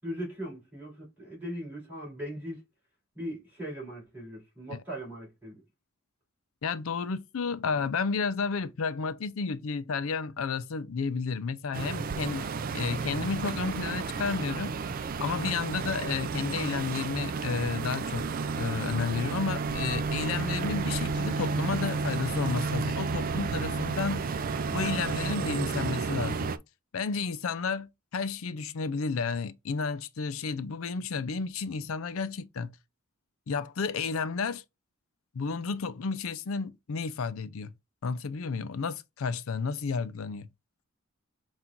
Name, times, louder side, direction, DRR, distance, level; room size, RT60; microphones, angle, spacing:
voice 1, 0.0-2.6 3.1-5.6, equal, 10° right, 3.3 m, -39 dB
voice 2, 6.6-12.5 12.7-14.8 15.2-18.2 18.6-24.4 24.7-26.5 26.9-32.7 33.5-34.6 35.3-37.7 38.0-40.5, left 5 dB, 75° left, 0.5 m, -32 dB
sound 1, 11.7-26.6, right 4 dB, 40° right, 0.3 m, -32 dB
5.7 x 2.5 x 3.8 m
head